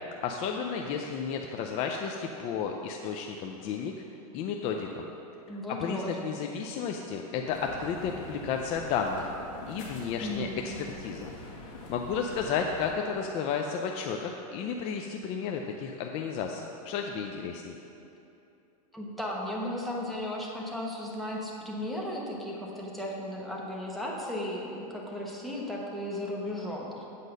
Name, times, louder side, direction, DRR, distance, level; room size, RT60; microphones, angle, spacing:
voice 1, 0.2-3.9 4.3-5.1 5.7-9.3 9.7-11.3 11.9-17.8, left 6 dB, 30° left, 2 dB, 0.4 m, -32 dB
voice 2, 5.5-6.1 10.2-10.5 18.9-27.0, left 1 dB, ahead, -4 dB, 1.1 m, -35 dB
sound 1, 7.5-12.9, left 2 dB, 60° left, 2.0 m, -44 dB
8.2 x 5.3 x 6.6 m, 2.8 s
supercardioid pair, 150°, 19 cm